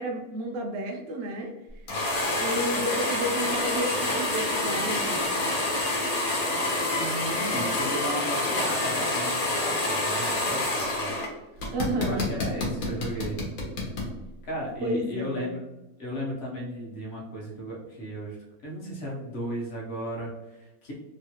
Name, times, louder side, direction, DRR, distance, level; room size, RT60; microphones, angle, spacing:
voice 1, 0.0-1.5 2.4-5.3 11.7-12.3 14.8-15.6, right 1 dB, 75° right, 2 dB, 0.5 m, -31 dB
sound 1, 1.9-11.3 11.6-14.1, left 2 dB, 75° left, 1.3 m, -27 dB
voice 2, 6.8-11.2 12.0-13.4 14.4-15.6 16.0-18.4 18.6-20.9, equal, 50° left, -3 dB, 1.0 m, -35 dB
3.0 x 2.4 x 2.8 m, 1.0 s
omnidirectional pair, 1.5 m